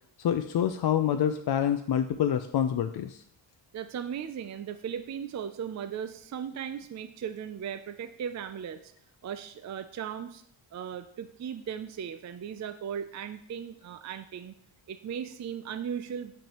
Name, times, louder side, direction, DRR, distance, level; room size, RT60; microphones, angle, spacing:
voice 1, 0.2-3.2, left 9 dB, 55° left, 8 dB, 0.5 m, -27 dB
voice 2, 3.7-8.9 9.2-10.4 10.7-14.5 14.9-16.3, right 8 dB, 40° right, 10 dB, 0.4 m, -37 dB
7.3 x 5.3 x 3.0 m, 0.69 s
cardioid pair, 65°, 47 cm